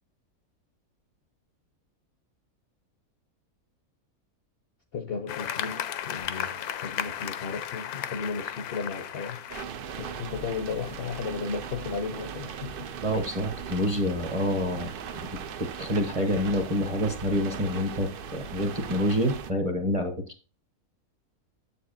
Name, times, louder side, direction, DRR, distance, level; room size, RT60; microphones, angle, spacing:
voice 1, 4.9-9.4 10.0-12.8, left 5 dB, 55° left, 0.7 m, -35 dB
sound 1, 5.3-9.6 10.4-11.2, left 10 dB, 85° left, 1.1 m, -35 dB
sound 2, 9.5-19.5, right 7 dB, 85° right, 0.4 m, -38 dB
voice 2, 13.0-14.9 15.8-20.1, equal, 25° right, 0.8 m, -27 dB
7.6 x 6.8 x 2.5 m
omnidirectional pair, 1.6 m